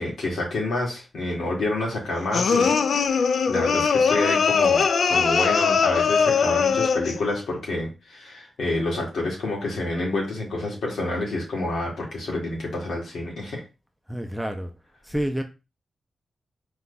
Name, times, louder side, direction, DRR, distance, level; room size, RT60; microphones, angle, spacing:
voice 1, 0.0-13.6, left 2 dB, 90° left, 2.1 m, -28 dB
sound 1, 2.3-7.2, left 6 dB, 60° left, 0.3 m, -21 dB
voice 2, 14.1-14.7 15.0-15.4, equal, ahead, 0.5 m, -28 dB
4.5 x 2.3 x 3.9 m
wide cardioid pair, 165°, 0 cm